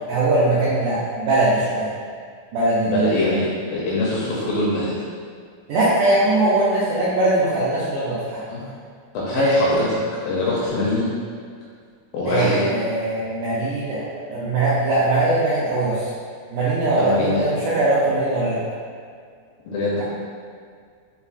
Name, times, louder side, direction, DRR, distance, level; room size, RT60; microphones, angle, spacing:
voice 1, 0.1-1.9 2.5-3.1 5.7-8.4 9.3-9.8 12.3-14.0 14.3-16.1 16.5-18.6, right 2 dB, 90° right, -9 dB, 1.8 m, -20 dB
voice 2, 2.8-4.9 8.5-8.6 9.1-9.8 10.2-11.1 12.1-12.7 17.0-17.4 19.7-20.0, left 2 dB, 85° left, -6 dB, 2.0 m, -23 dB
6.8 x 2.4 x 2.4 m, 2.1 s
omnidirectional pair, 4.4 m